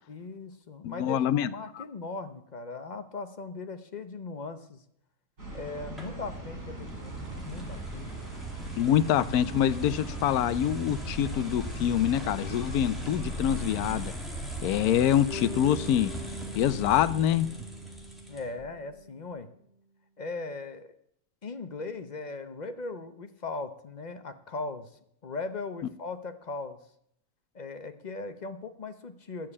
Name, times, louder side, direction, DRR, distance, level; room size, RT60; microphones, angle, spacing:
voice 1, 0.1-4.8 5.5-7.2 7.4-8.1 18.3-19.5 20.2-20.9 21.4-24.9 25.2-26.8 27.5-29.5, left 3 dB, 40° left, 8 dB, 0.7 m, -39 dB
voice 2, 0.8-1.5 1.8-1.9 8.8-14.1 14.6-16.1 16.5-17.5, left 11 dB, 85° left, 15 dB, 1.1 m, -25 dB
sound 1, 5.4-14.0, right 2 dB, 60° right, 4.7 m, -41 dB
sound 2, 6.0-18.7, right 1 dB, ahead, 2.2 m, -39 dB
Bass guitar, 15.3-19.4, equal, 45° right, 3.4 m, -43 dB
10.0 x 7.5 x 8.5 m, 0.72 s
omnidirectional pair, 1.5 m